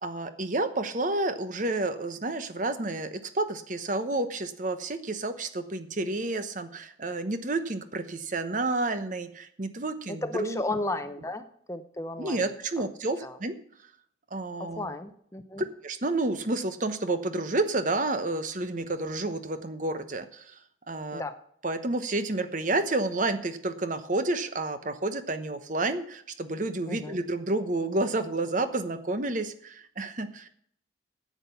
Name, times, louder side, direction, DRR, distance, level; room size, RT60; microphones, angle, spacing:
voice 1, 0.0-10.6 12.2-13.6 14.3-14.9 15.8-20.6 20.9-21.2 21.6-30.5, right 2 dB, 45° right, 10 dB, 1.0 m, -30 dB
voice 2, 10.1-12.5 12.8-12.9 13.2-13.4 14.6-15.6 21.1-21.4 26.9-27.2, left 2 dB, 15° left, 9 dB, 0.7 m, -34 dB
10.0 x 8.4 x 6.9 m, 0.65 s
head